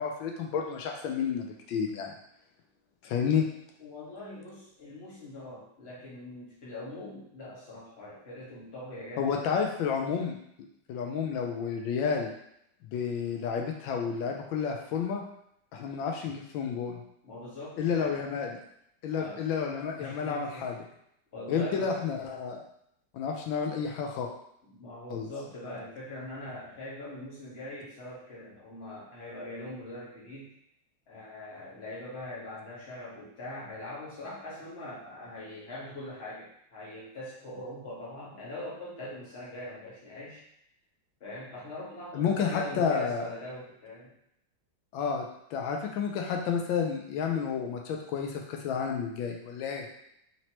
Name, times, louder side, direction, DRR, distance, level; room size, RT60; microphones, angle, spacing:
voice 1, 0.0-2.1 3.0-3.5 9.2-10.4 10.9-12.3 12.9-15.2 15.7-17.0 17.8-18.6 19.0-20.8 21.5-22.6 23.1-24.3 25.1-25.3 42.1-43.3 44.9-45.2 45.5-49.9, left 6 dB, 90° left, 1 dB, 1.4 m, -30 dB
voice 2, 3.0-3.4 3.8-9.4 17.2-18.2 19.1-20.7 21.3-22.0 24.7-30.5 31.1-40.4 41.2-44.1, left 1 dB, 35° left, -7 dB, 1.5 m, -42 dB
4.4 x 3.0 x 2.9 m, 0.75 s
omnidirectional pair, 2.1 m